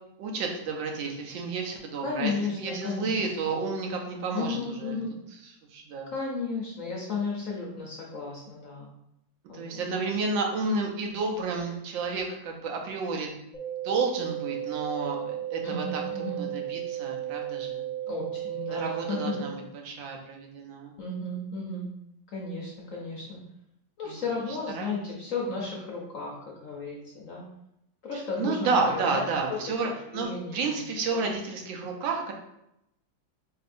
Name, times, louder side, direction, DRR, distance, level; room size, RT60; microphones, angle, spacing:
voice 1, 0.2-4.9 5.7-6.1 9.5-13.4 13.8-17.8 18.7-20.9 24.0-24.2 24.7-25.0 28.1-32.3, right 4 dB, 80° right, 2 dB, 1.4 m, -31 dB
voice 2, 2.0-3.3 4.3-5.1 6.1-8.9 9.5-9.8 15.6-16.4 18.1-19.5 21.0-21.9 22.3-23.4 24.0-26.3 26.6-27.4 28.0-29.2 29.5-29.6 29.8-30.7 31.1-31.2, left 4 dB, 65° left, -3 dB, 0.8 m, -34 dB
sound 1, 13.5-19.5, right 12 dB, 5° left, 0.9 m, -34 dB
4.5 x 3.3 x 2.5 m, 0.81 s
omnidirectional pair, 2.0 m